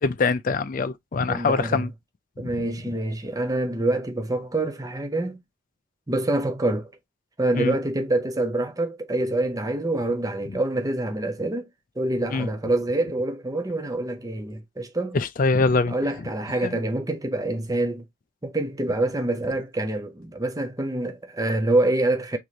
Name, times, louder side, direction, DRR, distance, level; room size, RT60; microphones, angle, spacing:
voice 1, 0.0-1.9 7.6-7.8 12.3-12.5 15.1-15.9 16.6-16.8, left 4 dB, 40° left, 0.4 m, -23 dB
voice 2, 1.3-1.9 2.4-5.4 6.1-6.9 7.4-11.7 12.0-15.2 15.9-18.0 18.4-22.4, right 2 dB, 15° right, 0.6 m, -26 dB
4.8 x 3.7 x 2.8 m
head